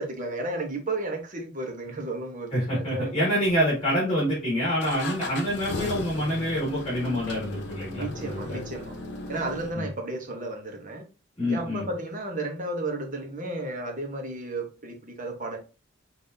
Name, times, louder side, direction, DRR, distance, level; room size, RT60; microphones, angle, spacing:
voice 1, 0.0-3.3 7.9-9.0 9.3-11.0 11.5-15.6, right 2 dB, 45° right, 1.0 m, -33 dB
voice 2, 2.5-8.6 9.7-9.9 11.4-11.8, equal, 30° left, 1.9 m, -26 dB
sound 1, 3.4-4.1 4.8-9.7, left 2 dB, 60° left, 0.9 m, -37 dB
5.3 x 2.7 x 2.6 m
head